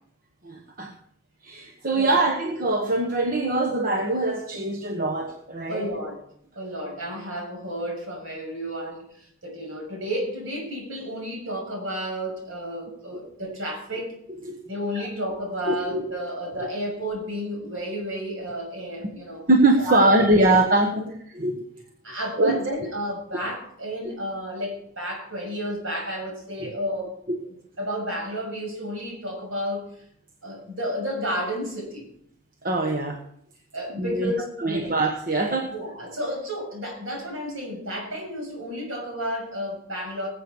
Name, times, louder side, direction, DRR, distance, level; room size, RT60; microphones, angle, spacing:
voice 1, 0.4-0.9 1.4-5.9 14.3-14.6 15.7-16.0 19.5-21.0 21.3-21.7 22.4-22.6 23.3-23.4 26.6-26.7 27.3-27.4 32.6-33.2 34.0-34.3 34.6-35.7, right 2 dB, 40° right, 3 dB, 1.2 m, -23 dB
voice 2, 1.9-2.3 5.7-6.2 6.5-14.2 14.7-19.4 19.8-20.3 20.8-21.1 22.0-27.1 27.8-29.8 30.4-32.1 33.7-35.0 35.7-40.3, equal, 60° right, 0 dB, 6.7 m, -32 dB
19.5 x 8.2 x 4.7 m, 0.69 s
head